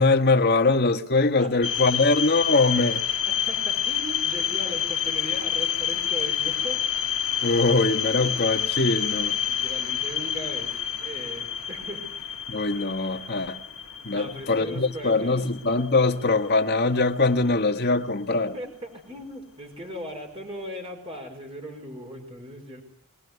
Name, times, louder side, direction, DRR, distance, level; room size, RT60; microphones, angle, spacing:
voice 1, 0.0-3.0 7.4-9.4 12.5-13.6 14.0-18.5, left 3 dB, 50° left, 1.5 m, -22 dB
sound 1, 1.6-16.5, left 9 dB, 65° left, 1.3 m, -28 dB
voice 2, 3.5-6.8 9.1-12.4 14.1-15.4 18.5-22.8, equal, 25° right, 5.0 m, -38 dB
22.5 x 19.0 x 9.6 m
head